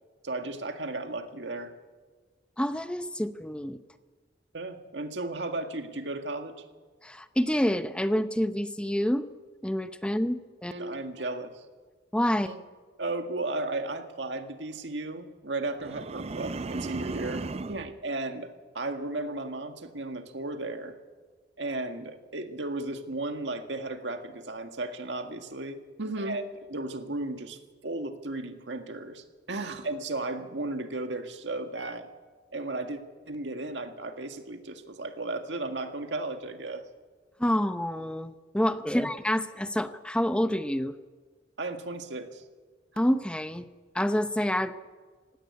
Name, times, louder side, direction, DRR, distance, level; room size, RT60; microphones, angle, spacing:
voice 1, 0.2-1.7 4.5-6.6 10.7-11.6 12.5-12.6 13.0-21.0 21.6-32.1 32.5-33.0 33.3-36.8 41.6-42.4, right 2 dB, 85° right, 6 dB, 1.9 m, -35 dB
voice 2, 2.6-3.8 7.0-9.3 9.6-10.7 12.1-12.5 37.4-41.0 43.0-43.6 43.9-44.7, equal, 5° left, 11 dB, 0.7 m, -27 dB
sound 1, 15.8-17.9, right 3 dB, 35° right, 0.5 m, -35 dB
18.0 x 16.5 x 9.6 m, 1.4 s
head